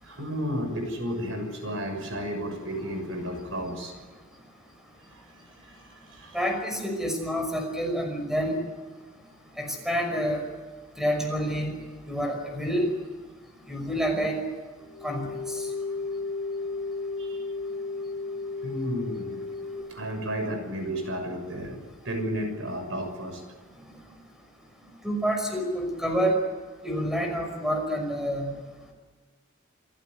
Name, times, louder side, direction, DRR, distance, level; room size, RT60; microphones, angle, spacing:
voice 1, 0.0-3.9 5.1-6.4 17.2-17.4 18.6-19.4 19.9-23.4, equal, 70° right, 5 dB, 6.6 m, -33 dB
voice 2, 6.3-8.6 9.6-10.4 11.0-11.8 12.1-12.9 13.7-14.4 15.0-15.7 25.0-26.4 26.8-28.5, equal, ahead, 3 dB, 5.7 m, -28 dB
sound 1, 14.8-19.7, left 3 dB, 85° right, 7.6 m, -34 dB
28.0 x 16.5 x 9.4 m, 1.4 s
head